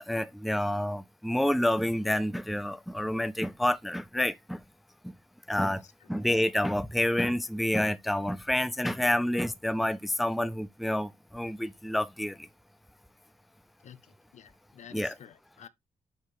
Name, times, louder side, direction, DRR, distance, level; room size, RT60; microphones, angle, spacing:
voice 1, 0.0-4.6 5.0-5.1 5.5-5.8 6.1-12.5 14.9-15.1, left 1 dB, ahead, 0.4 m, -28 dB
voice 2, 5.6-5.9 13.8-14.0 14.3-15.7, left 9 dB, 60° left, 0.7 m, -50 dB
8.1 x 4.6 x 3.0 m
cardioid pair, 115°, 13 cm